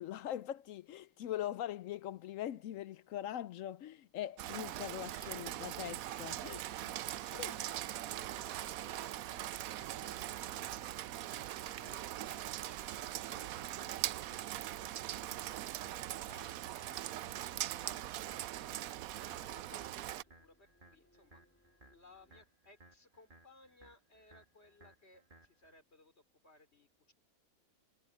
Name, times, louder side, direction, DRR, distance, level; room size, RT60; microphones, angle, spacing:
voice 1, 0.0-7.0 7.3-7.5, left 12 dB, 70° left, 0.9 m, -42 dB
Rain, 4.4-20.2, right 13 dB, 70° right, 1.0 m, -41 dB
voice 2, 7.1-11.0 11.5-14.2 15.0-18.0 18.6-21.4 21.9-27.1, left 2 dB, 40° left, 4.1 m, -63 dB
sound 1, 7.8-25.8, right 2 dB, 35° right, 2.4 m, -64 dB
sound 2, 8.5-22.4, equal, 10° left, 4.3 m, -71 dB
omnidirectional pair, 1.6 m